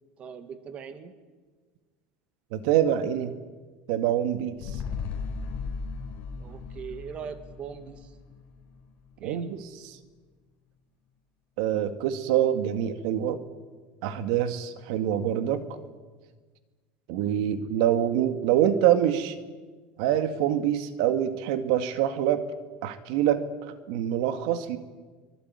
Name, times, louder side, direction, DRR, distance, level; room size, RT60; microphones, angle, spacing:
voice 1, 0.2-1.1 6.4-8.1 9.2-9.6 17.5-17.7, right 7 dB, 30° right, 10 dB, 2.0 m, -41 dB
voice 2, 2.5-3.3 3.9-4.6 9.2-9.6 9.8-10.0 11.6-13.4 14.0-15.6 17.1-19.4 20.0-22.4 22.8-24.8, right 10 dB, 70° right, 10 dB, 2.0 m, -25 dB
sound 1, 4.6-9.1 9.4-9.5, left 5 dB, 45° left, 5.4 m, -37 dB
24.5 x 22.5 x 9.7 m, 1.4 s
cardioid pair, 160°, 4 cm